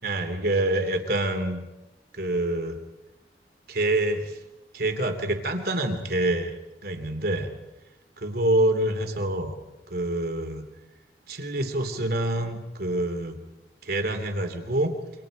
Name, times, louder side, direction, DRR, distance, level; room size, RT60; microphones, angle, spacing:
voice 1, 0.0-1.6 2.1-2.8 3.7-4.4 4.7-6.6 6.8-7.5 8.2-9.6 9.9-10.6 11.3-13.4 13.8-14.9, right 1 dB, 60° right, 6 dB, 3.1 m, -26 dB
28.5 x 26.0 x 5.2 m, 1.0 s
head